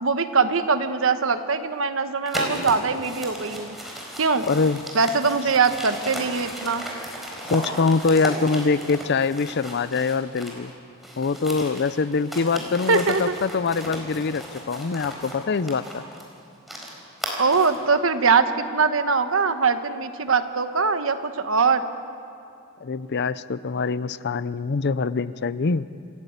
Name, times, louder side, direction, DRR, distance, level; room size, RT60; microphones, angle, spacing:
voice 1, 0.0-3.7 4.2-4.4 4.9-6.8 12.9-13.4 17.4-21.8, right 5 dB, 70° right, 9 dB, 1.2 m, -22 dB
sound 1, 2.3-10.7 11.0-17.8, equal, ahead, 4.4 m, -35 dB
voice 2, 4.5-4.8 7.5-10.7 11.2-16.1 22.8-25.9, left 4 dB, 55° left, 16 dB, 0.5 m, -24 dB
27.5 x 15.0 x 8.3 m, 2.7 s
head